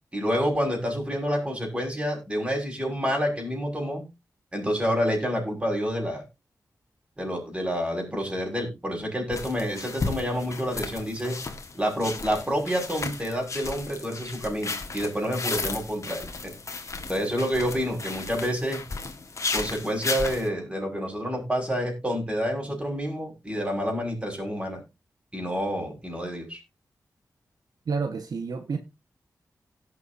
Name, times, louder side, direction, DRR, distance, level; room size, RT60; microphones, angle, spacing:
voice 1, 0.1-4.0 4.5-6.2 7.2-11.4 11.7-16.5 17.1-18.8 19.5-24.8 25.3-26.6, equal, 15° right, 6.1 m, -28 dB
sound 1, 9.3-20.5, left 4 dB, 50° left, 1.7 m, -34 dB
voice 2, 27.9-28.8, right 5 dB, 75° right, 1.4 m, -29 dB
17.0 x 6.7 x 2.8 m
wide cardioid pair, 105°, 7 cm